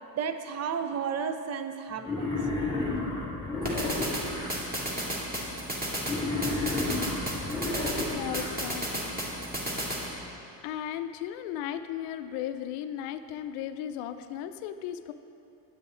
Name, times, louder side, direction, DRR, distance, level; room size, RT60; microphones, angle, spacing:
voice 1, 0.1-2.3 2.7-2.8, right 6 dB, 35° right, 8 dB, 0.5 m, -32 dB
Wild animals, 2.0-4.5 6.0-8.5, left 2 dB, 10° left, 1.7 m, -31 dB
sound 1, 3.6-10.1, equal, 15° right, 1.9 m, -33 dB
voice 2, 8.1-9.2 10.6-15.1, left 10 dB, 75° left, 10 dB, 0.6 m, -36 dB
9.7 x 6.8 x 3.8 m, 2.7 s
supercardioid pair, 100°, 49 cm